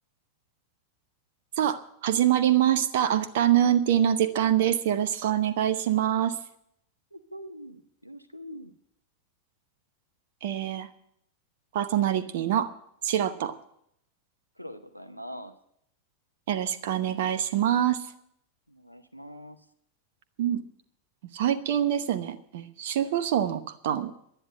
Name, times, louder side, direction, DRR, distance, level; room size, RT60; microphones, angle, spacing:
voice 1, 1.6-6.4 10.4-10.9 11.7-12.7 13.0-13.6 16.5-18.1 20.4-20.6 21.3-24.1, right 10 dB, 55° right, 11 dB, 0.9 m, -25 dB
voice 2, 7.1-8.7 14.6-15.5 18.7-19.6, equal, 90° right, 8 dB, 0.8 m, -43 dB
11.5 x 10.0 x 8.7 m, 0.72 s
figure-of-eight pair, 90°, 0 cm